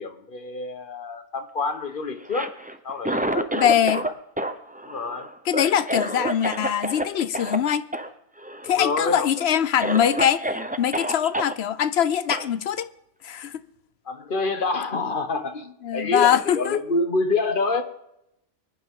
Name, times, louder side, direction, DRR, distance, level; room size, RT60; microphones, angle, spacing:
voice 1, 0.0-2.5 2.8-3.9 4.8-5.3 8.6-9.3 14.0-17.8, left 3 dB, 45° left, 1.4 m, -27 dB
Cough, 2.2-4.1 4.4-7.0 7.3-7.6 7.9-8.1 8.4-8.9 9.4-9.5 9.8-11.5 12.3-12.5, right 1 dB, 10° right, 0.7 m, -28 dB
voice 2, 3.5-4.1 5.5-7.8 8.6-10.5 10.8-12.9 13.2-13.5 15.8-16.8, left 9 dB, 65° left, 1.0 m, -22 dB
23.0 x 11.0 x 3.8 m
omnidirectional pair, 1.2 m